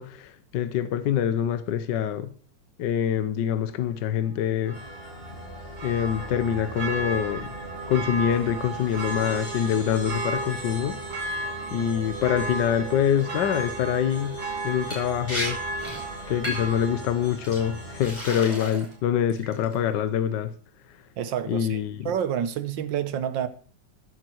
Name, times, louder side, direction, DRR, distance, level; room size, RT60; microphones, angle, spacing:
voice 1, 0.0-2.3 2.8-4.8 5.8-7.5 7.9-11.0 11.7-14.4 14.6-15.6 16.3-20.5 21.5-22.1, left 9 dB, 70° left, 1.5 m, -25 dB
Church bell, 4.6-18.3 18.7-18.8, right 2 dB, 60° right, 2.7 m, -35 dB
sound 1, 4.7-18.1, left 1 dB, 30° left, 5.4 m, -42 dB
Liquid, 14.9-15.0 15.3-15.5 15.8-16.0 16.4-16.8 17.4-17.6 18.0-18.9 19.3-19.7, left 1 dB, 5° left, 5.1 m, -33 dB
voice 2, 21.2-21.8 22.1-23.5, right 9 dB, 80° right, 1.7 m, -28 dB
13.5 x 10.5 x 4.6 m
omnidirectional pair, 2.0 m